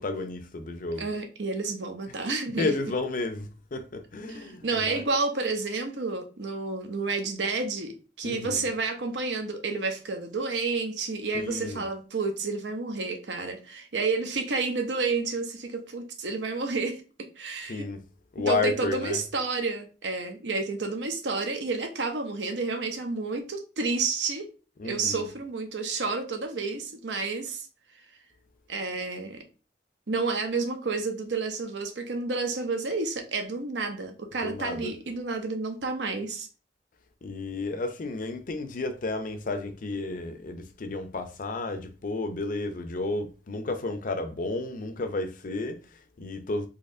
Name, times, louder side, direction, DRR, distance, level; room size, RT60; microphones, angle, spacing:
voice 1, 0.0-1.1 2.6-5.0 8.2-8.7 11.3-11.8 17.7-18.0 18.3-19.2 24.8-25.3 34.4-34.9 37.2-46.7, left 2 dB, 50° left, 0.5 m, -32 dB
voice 2, 1.0-2.7 4.3-17.0 17.4-17.9 18.5-24.5 24.8-27.7 28.7-29.4 30.1-36.5, right 3 dB, 80° right, 0.8 m, -30 dB
4.1 x 2.8 x 2.5 m
head